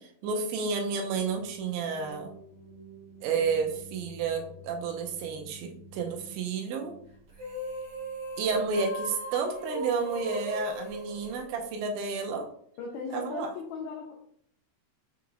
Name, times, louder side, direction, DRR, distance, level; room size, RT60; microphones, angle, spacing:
voice 1, 0.0-2.3 3.2-6.9 8.4-12.5 13.1-13.5, right 5 dB, 85° right, 3 dB, 3.0 m, -31 dB
sound 1, 1.2-9.0, right 2 dB, 75° left, 1.6 m, -51 dB
sound 2, 7.3-12.0, equal, 50° right, 1.6 m, -37 dB
voice 2, 12.8-14.1, left 4 dB, 90° left, -1 dB, 2.1 m, -37 dB
6.8 x 3.1 x 2.4 m, 0.63 s
omnidirectional pair, 5.2 m